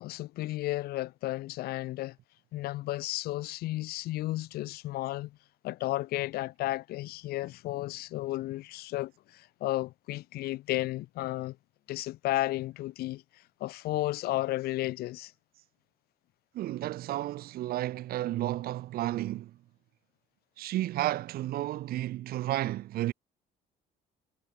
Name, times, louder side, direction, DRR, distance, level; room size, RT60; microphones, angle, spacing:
voice 1, 0.0-2.2 2.5-5.4 5.6-11.6 11.9-13.2 13.6-15.3, left 17 dB, 65° left, 0.4 m, -33 dB
voice 2, 16.5-19.6 20.6-23.1, right 14 dB, 65° right, 0.6 m, -32 dB
cardioid pair, 110°, 17 cm